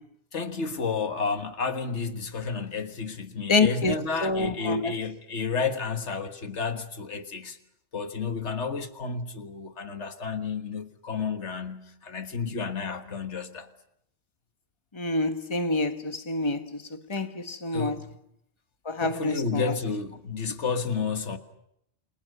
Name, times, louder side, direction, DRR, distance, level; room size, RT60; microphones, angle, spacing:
voice 1, 0.3-7.6 7.9-13.7 17.1-17.2 17.7-18.1 19.0-21.4, left 5 dB, 85° left, 1.9 m, -31 dB
voice 2, 3.5-4.9 14.9-16.6 16.9-18.0 18.8-19.6, left 3 dB, 25° left, 1.4 m, -27 dB
28.5 x 22.0 x 6.7 m
omnidirectional pair, 1.1 m